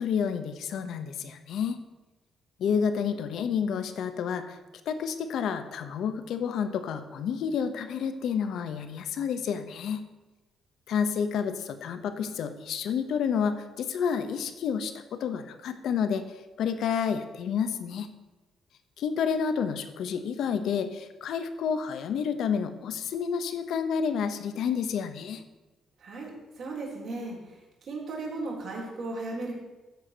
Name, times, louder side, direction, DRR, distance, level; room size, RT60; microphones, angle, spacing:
voice 1, 0.0-1.8 2.6-4.6 4.9-10.0 10.9-16.2 16.6-18.1 19.0-25.4, left 7 dB, 75° left, 10 dB, 1.0 m, -30 dB
voice 2, 26.0-27.4 27.8-29.5, right 2 dB, 60° right, -3 dB, 4.0 m, -36 dB
13.0 x 4.9 x 6.7 m, 1.1 s
cardioid pair, 90°, 0 cm